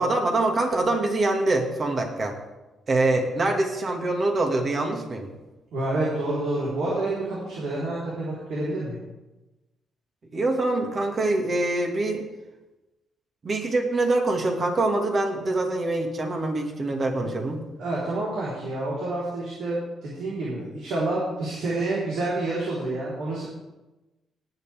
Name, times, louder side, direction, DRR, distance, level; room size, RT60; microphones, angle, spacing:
voice 1, 0.0-2.4 2.9-5.3 10.3-12.2 13.4-17.6, right 2 dB, 40° right, 2 dB, 2.4 m, -24 dB
voice 2, 5.7-9.0 17.8-23.4, right 2 dB, 80° right, -8 dB, 4.5 m, -28 dB
18.0 x 9.8 x 3.7 m, 1.1 s
cardioid pair, 90°, 0 cm